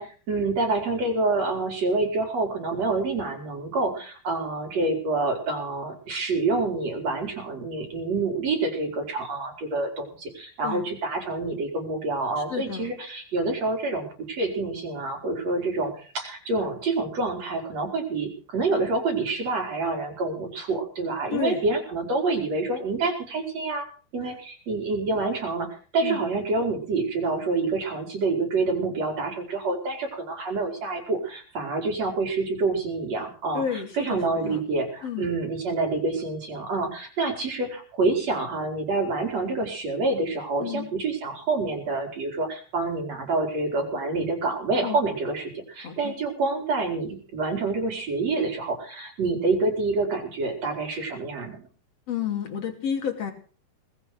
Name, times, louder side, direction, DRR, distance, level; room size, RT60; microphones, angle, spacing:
voice 1, 0.0-23.8 24.1-25.7 25.9-51.6, right 3 dB, 40° right, 3 dB, 5.0 m, -27 dB
voice 2, 12.4-12.9 21.3-21.6 26.0-26.2 33.5-34.6 35.0-35.3 40.6-40.9 44.8-45.0 45.8-46.1 52.1-53.3, left 8 dB, 40° left, 5 dB, 3.4 m, -31 dB
20.0 x 7.9 x 7.8 m, 0.40 s
omnidirectional pair, 5.0 m